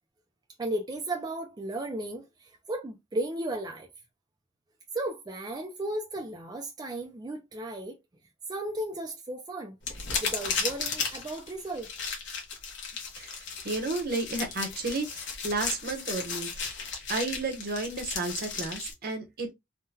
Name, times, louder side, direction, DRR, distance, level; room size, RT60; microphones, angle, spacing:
voice 1, 0.6-3.9 4.9-8.0 8.5-9.8 10.2-11.9, right 1 dB, 20° right, 0.4 m, -35 dB
sound 1, 9.8-18.9, left 5 dB, 70° left, 1.0 m, -35 dB
voice 2, 13.2-16.8 17.1-19.5, right 3 dB, 55° right, 0.9 m, -32 dB
3.6 x 2.2 x 2.7 m
head